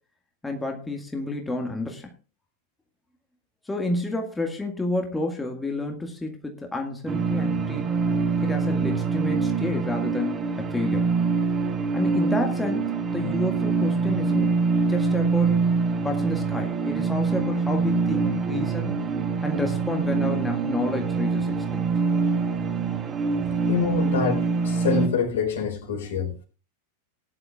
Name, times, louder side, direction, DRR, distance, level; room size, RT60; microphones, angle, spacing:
voice 1, 0.4-2.1 3.6-7.9 8.4-11.1 11.9-14.6 14.9-15.6 16.0-19.1 19.4-21.9 23.4-23.6, left 2 dB, 10° left, 1.9 m, -30 dB
sound 1, 7.1-25.1, right 4 dB, 20° right, 2.0 m, -24 dB
voice 2, 23.6-26.4, left 3 dB, 60° left, 4.2 m, -26 dB
19.0 x 11.0 x 2.4 m
figure-of-eight pair, 90°, 0 cm